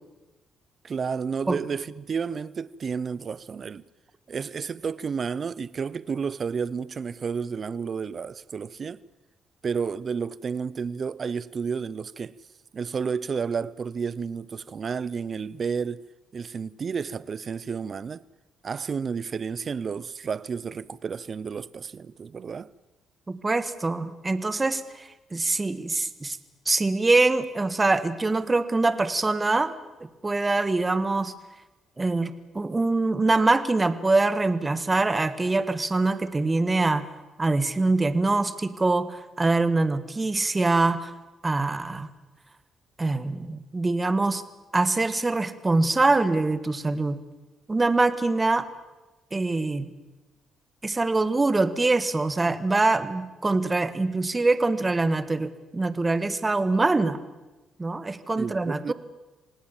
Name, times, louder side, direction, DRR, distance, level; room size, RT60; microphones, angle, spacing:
voice 1, 0.8-3.8 4.3-9.0 9.6-12.3 12.7-16.0 16.3-18.2 18.6-22.7 58.4-58.9, right 6 dB, 45° right, 0.8 m, -31 dB
voice 2, 23.3-26.4 26.6-29.7 30.0-31.3 32.0-37.1 37.4-41.1 41.4-42.1 43.0-44.4 44.7-47.2 47.7-48.7 49.3-49.9 50.8-57.2 57.8-58.9, right 3 dB, 20° right, 1.6 m, -24 dB
27.0 x 18.5 x 7.3 m
cardioid pair, 90°, 0 cm